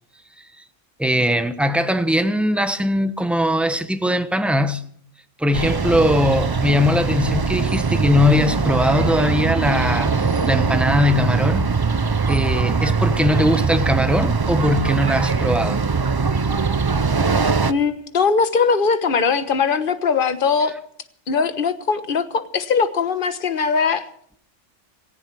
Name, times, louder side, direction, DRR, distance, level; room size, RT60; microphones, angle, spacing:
voice 1, 1.0-4.8 5.4-11.7 12.3-15.8, left 1 dB, ahead, 1.0 m, -20 dB
sound 1, 5.5-17.7, right 4 dB, 35° right, 0.4 m, -21 dB
voice 2, 17.7-20.7 21.3-24.1, left 5 dB, 45° left, 1.3 m, -20 dB
18.0 x 15.5 x 4.7 m
omnidirectional pair, 1.3 m